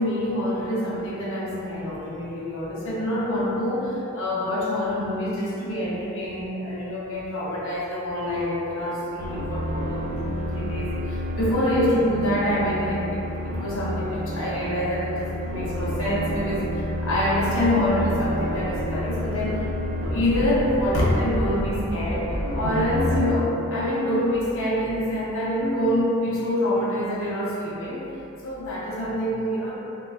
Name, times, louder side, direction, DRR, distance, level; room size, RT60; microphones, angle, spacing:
voice 1, 0.0-28.1 28.4-29.7, left 1 dB, 70° left, -7 dB, 0.6 m, -26 dB
sound 1, 9.2-23.2, equal, 85° right, 0.5 m, -29 dB
3.6 x 2.2 x 2.3 m, 2.8 s
head